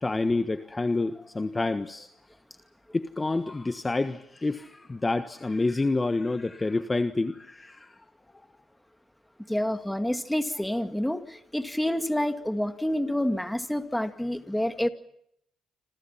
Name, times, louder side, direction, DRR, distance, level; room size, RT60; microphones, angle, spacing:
voice 1, 0.0-2.1 2.9-8.0, left 3 dB, 20° left, 10 dB, 1.4 m, -28 dB
voice 2, 9.5-14.9, left 1 dB, 5° left, 9 dB, 2.2 m, -28 dB
27.5 x 27.0 x 5.9 m, 0.74 s
cardioid pair, 90°, 0 cm